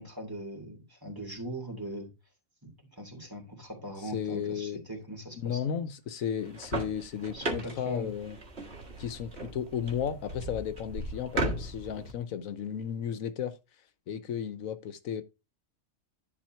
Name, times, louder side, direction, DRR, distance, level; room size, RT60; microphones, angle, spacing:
voice 1, 0.0-2.1 2.6-5.6 7.3-8.1, equal, 15° right, 3.0 m, -40 dB
voice 2, 4.0-4.8 5.3-8.4 9.0-13.5 14.1-15.2, left 8 dB, 80° left, 1.2 m, -34 dB
sound 1, 6.4-12.1, right 2 dB, 50° right, 2.0 m, -37 dB
10.5 x 4.3 x 4.4 m
omnidirectional pair, 1.4 m